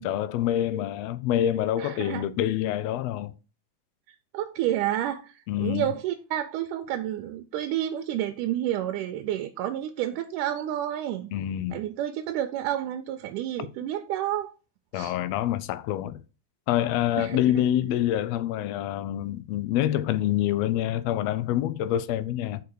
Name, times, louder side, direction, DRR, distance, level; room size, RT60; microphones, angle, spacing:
voice 1, 0.0-3.3 5.5-5.9 11.3-11.8 14.9-16.2 16.7-22.6, left 12 dB, 80° left, 1.5 m, -26 dB
voice 2, 1.8-2.2 4.3-11.3 11.7-14.5 14.9-15.1 17.2-17.7, right 12 dB, 90° right, 2.2 m, -30 dB
5.3 x 4.7 x 6.4 m
omnidirectional pair, 3.6 m